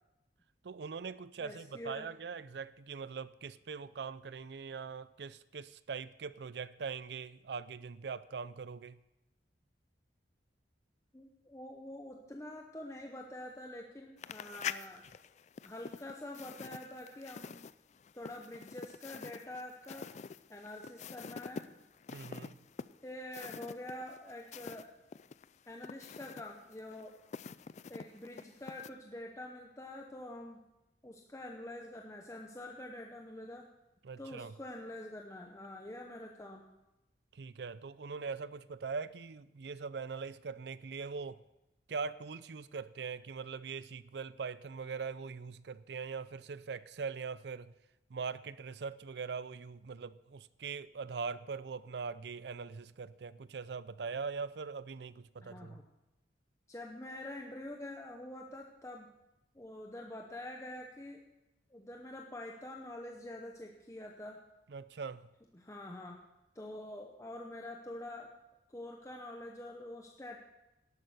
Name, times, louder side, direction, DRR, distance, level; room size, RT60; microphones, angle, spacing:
voice 1, 0.6-9.0 22.1-22.6 34.0-34.6 37.3-41.4 41.9-47.7 48.1-55.8 64.7-65.3, right 5 dB, 70° right, 17 dB, 0.5 m, -42 dB
voice 2, 1.4-2.1 11.1-15.0 15.6-17.6 18.1-20.1 20.5-21.7 23.0-24.9 25.7-27.1 27.9-30.6 31.0-33.7 34.2-36.6 55.4-55.8 56.7-59.1 59.5-61.2 61.7-64.4 65.5-66.2 66.5-68.3 68.7-70.4, left 1 dB, 15° left, 1 dB, 0.8 m, -46 dB
sound 1, 14.2-24.9 25.1-28.9, left 6 dB, 40° left, 0.3 m, -46 dB
12.0 x 8.7 x 6.6 m, 0.96 s
head